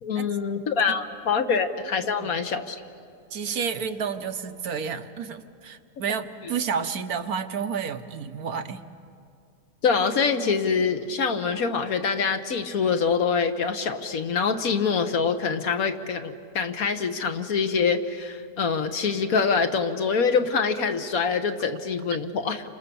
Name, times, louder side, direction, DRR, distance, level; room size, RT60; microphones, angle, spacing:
voice 1, 0.0-2.8 9.8-22.6, left 5 dB, 65° left, 8 dB, 1.6 m, -25 dB
voice 2, 3.3-8.8, right 6 dB, 70° right, 8 dB, 1.4 m, -31 dB
29.5 x 26.0 x 7.0 m, 2.3 s
omnidirectional pair, 1.7 m